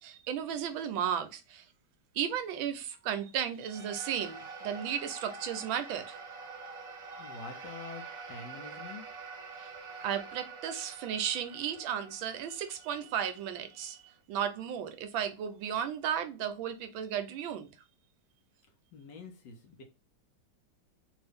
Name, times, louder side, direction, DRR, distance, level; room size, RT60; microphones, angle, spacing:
voice 1, 0.0-1.7 2.1-6.2 9.5-9.7 10.0-14.0 14.3-17.7, right 9 dB, 80° right, 1.3 m, -34 dB
sound 1, 3.6-14.1, right 4 dB, 55° right, 1.3 m, -46 dB
voice 2, 7.2-8.0 8.3-9.0 18.9-19.8, left 4 dB, 65° left, 1.3 m, -46 dB
3.6 x 2.6 x 3.4 m
omnidirectional pair, 2.3 m